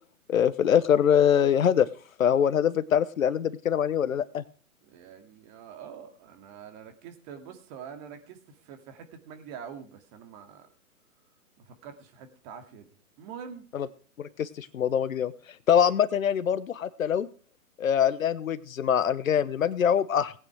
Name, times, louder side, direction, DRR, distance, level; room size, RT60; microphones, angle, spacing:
voice 1, 0.3-1.9 2.2-4.4 13.7-13.9 14.2-15.3 15.7-17.3 17.8-20.3, left 8 dB, 65° left, 16 dB, 1.1 m, -24 dB
voice 2, 4.8-10.7 11.6-12.9 13.2-13.6, right 7 dB, 30° right, 7 dB, 2.4 m, -45 dB
19.0 x 8.9 x 4.7 m, 0.42 s
hypercardioid pair, 135°, 43 cm